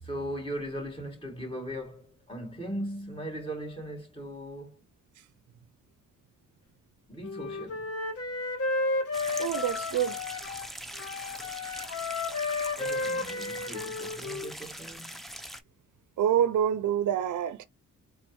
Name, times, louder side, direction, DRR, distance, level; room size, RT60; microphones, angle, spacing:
voice 1, 0.0-4.8 7.1-7.9 12.8-15.2, equal, 15° left, 2.6 m, -38 dB
Wind instrument woodwind instrument, 7.2-10.7 11.0-14.5, left 3 dB, 45° left, 1.3 m, -33 dB
sound 1, 9.1-15.6, equal, ahead, 0.6 m, -42 dB
voice 2, 9.4-10.2 16.2-17.7, right 10 dB, 65° right, 0.5 m, -27 dB
4.2 x 2.4 x 3.0 m
cardioid pair, 75°, 32 cm